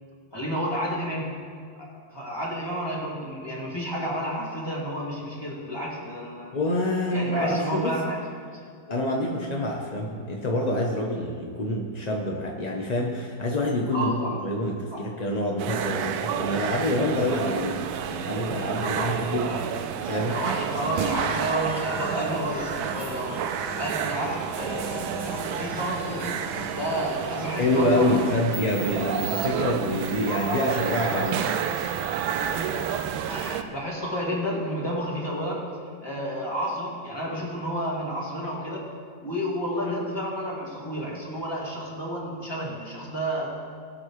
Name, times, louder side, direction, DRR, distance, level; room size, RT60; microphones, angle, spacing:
voice 1, 0.3-1.3 1.8-6.6 7.1-8.2 13.9-14.4 14.9-15.1 18.8-19.7 20.0-23.4 23.8-26.3 26.7-28.4 30.3-31.9 32.4-32.9 33.3-35.6 36.0-38.9 39.2-43.5, equal, 10° left, -5 dB, 2.3 m, -31 dB
voice 2, 6.5-8.0 8.9-19.6 20.1-20.4 27.6-31.4, left 1 dB, 45° left, -1 dB, 0.5 m, -26 dB
sound 1, 15.6-33.6, right 8 dB, 90° right, 1.4 m, -30 dB
sound 2, 20.8-28.2, left 2 dB, 65° left, 1.5 m, -40 dB
sound 3, 28.1-28.2 28.5-33.5, right 6 dB, 60° right, 1.8 m, -40 dB
20.0 x 7.4 x 3.2 m, 2.2 s
omnidirectional pair, 2.2 m